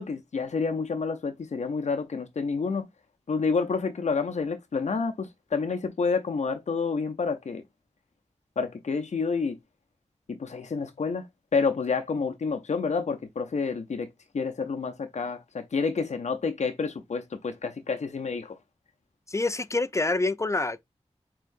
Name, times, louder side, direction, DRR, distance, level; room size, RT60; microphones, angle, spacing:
voice 1, 0.0-2.9 3.3-7.6 8.6-9.6 10.3-11.3 11.5-14.1 14.3-18.6, left 4 dB, 75° left, 0.5 m, -29 dB
voice 2, 19.3-20.8, left 2 dB, 25° left, 0.3 m, -26 dB
4.5 x 3.7 x 2.5 m
wide cardioid pair, 70°, 12 cm